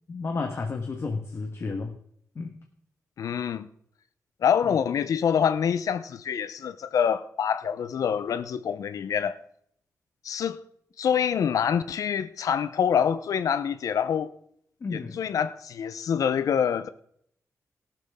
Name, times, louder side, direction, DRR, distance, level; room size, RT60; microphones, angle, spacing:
voice 1, 0.1-2.0 2.3-2.5 4.6-4.8 14.8-15.2, left 4 dB, 50° left, 1.4 m, -32 dB
voice 2, 3.2-3.7 4.4-9.4 10.2-10.6 11.0-14.3 14.9-16.9, left 8 dB, 80° left, 0.7 m, -26 dB
14.0 x 12.0 x 3.6 m
cardioid pair, 95°, 6 cm